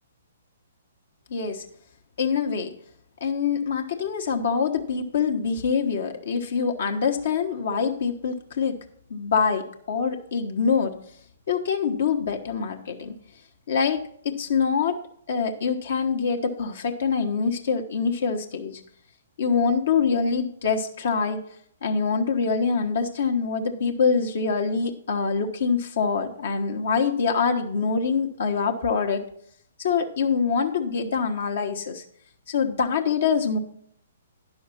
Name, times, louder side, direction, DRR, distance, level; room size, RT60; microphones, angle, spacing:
voice 1, 1.3-1.6 2.2-2.7 3.2-8.7 9.1-10.9 11.5-13.1 13.7-14.0 14.2-15.0 15.3-18.8 19.4-21.4 21.8-29.2 29.8-32.0 32.5-33.6, left 5 dB, 60° left, 4 dB, 1.1 m, -25 dB
10.5 x 6.4 x 5.8 m, 0.65 s
figure-of-eight pair, 120°, 0 cm